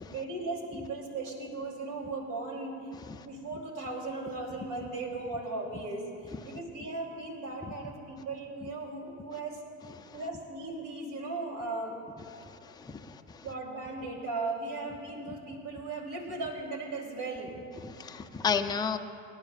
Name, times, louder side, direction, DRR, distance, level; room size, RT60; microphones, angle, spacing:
voice 1, 0.1-9.6 10.1-11.9 13.4-17.5, right 3 dB, 50° right, -1 dB, 3.4 m, -37 dB
voice 2, 12.3-13.4 17.8-19.0, left 6 dB, 10° left, 5 dB, 0.6 m, -33 dB
25.5 x 11.0 x 2.5 m, 2.5 s
figure-of-eight pair, 60°, 40 cm